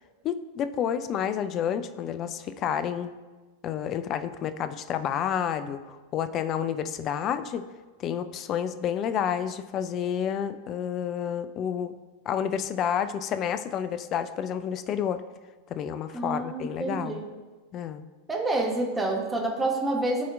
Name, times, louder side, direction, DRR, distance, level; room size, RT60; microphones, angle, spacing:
voice 1, 0.2-3.1 3.6-7.6 8.0-11.9 12.3-15.2 15.7-17.2 17.7-18.0, left 8 dB, 35° left, 11 dB, 0.4 m, -30 dB
voice 2, 16.1-17.3 18.3-20.2, right 2 dB, 10° right, 0 dB, 1.1 m, -28 dB
12.5 x 4.2 x 2.4 m, 1.3 s
figure-of-eight pair, 90°, 0 cm